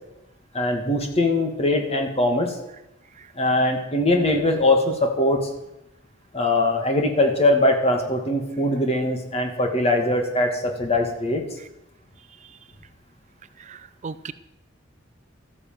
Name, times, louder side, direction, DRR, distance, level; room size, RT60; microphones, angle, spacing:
voice 1, 0.5-2.6 3.4-5.4 6.3-11.4, left 1 dB, 30° left, 3 dB, 2.3 m, -21 dB
voice 2, 13.6-14.3, right 5 dB, 35° right, 14 dB, 0.5 m, -38 dB
13.5 x 9.4 x 7.8 m, 0.90 s
head